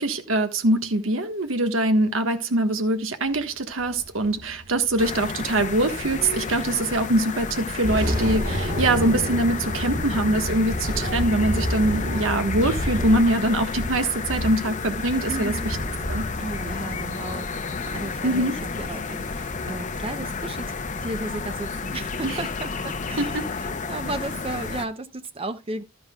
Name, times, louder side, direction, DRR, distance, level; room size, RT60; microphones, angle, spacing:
voice 1, 0.0-15.5 16.1-16.2 18.2-18.5 22.2-22.4 23.2-23.5, right 1 dB, 90° right, 1.4 m, -23 dB
sound 1, 3.8-6.6 6.9-7.1 7.6-22.4, equal, 50° right, 2.5 m, -31 dB
sound 2, 5.0-24.9, left 4 dB, 40° left, 0.7 m, -32 dB
voice 2, 15.3-15.8 16.4-20.7 21.0-25.8, right 2 dB, 30° right, 0.6 m, -34 dB
13.0 x 9.9 x 2.3 m
head